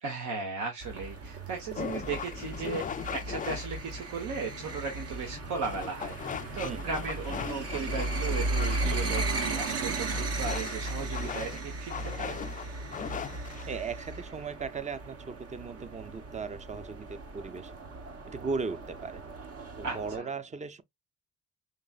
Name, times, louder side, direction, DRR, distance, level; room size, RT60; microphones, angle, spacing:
voice 1, 0.0-2.8 3.1-6.2 6.5-12.4 19.8-20.3, right 4 dB, 75° right, 1.3 m, -36 dB
sound 1, 0.8-20.2, right 2 dB, 55° right, 1.0 m, -36 dB
sound 2, 1.8-13.8, left 7 dB, 30° left, 0.3 m, -40 dB
voice 2, 13.7-17.7 18.3-19.2 19.8-20.8, right 5 dB, 25° right, 0.6 m, -37 dB
5.2 x 3.1 x 2.4 m
cardioid pair, 90°, 30 cm